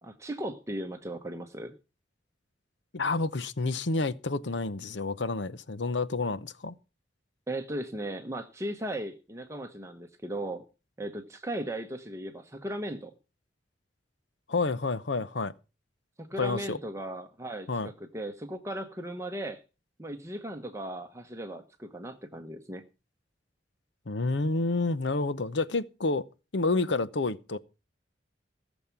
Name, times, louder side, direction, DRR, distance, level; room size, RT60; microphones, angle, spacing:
voice 1, 0.0-1.7 7.5-10.6 11.0-13.1 16.2-19.6 20.0-22.8, right 1 dB, 15° right, 0.9 m, -37 dB
voice 2, 2.9-6.7 14.5-15.5 16.4-16.8 17.7-17.9 24.1-26.3 26.5-27.6, left 3 dB, 70° left, 0.8 m, -29 dB
18.0 x 7.2 x 5.9 m
head